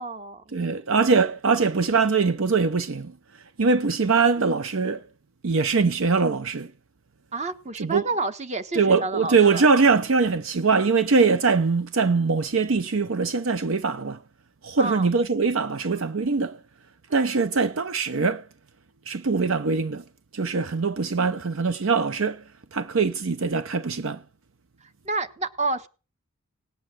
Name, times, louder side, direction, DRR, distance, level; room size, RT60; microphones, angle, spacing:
voice 1, 0.0-0.4 7.3-9.7 14.8-15.1 17.1-17.3 24.8-25.9, right 3 dB, 30° right, 1.3 m, -30 dB
voice 2, 0.5-5.0 5.4-6.7 7.7-8.1 8.7-14.2 14.6-16.6 17.1-18.5 19.1-20.0 20.3-24.2, right 4 dB, 65° right, 0.7 m, -22 dB
18.5 x 8.8 x 7.6 m
head